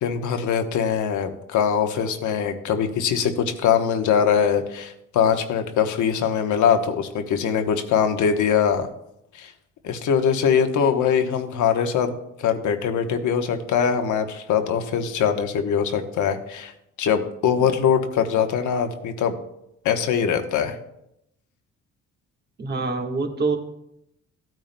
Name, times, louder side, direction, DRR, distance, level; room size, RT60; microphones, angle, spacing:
voice 1, 0.0-8.9 9.3-9.5 9.8-12.1 12.4-16.7 17.0-19.3 19.8-20.8, left 7 dB, 75° left, 6 dB, 1.1 m, -22 dB
voice 2, 22.6-23.6, right 3 dB, 35° right, 2 dB, 1.5 m, -26 dB
15.5 x 9.1 x 2.2 m, 0.80 s
cardioid pair, 90°, 30 cm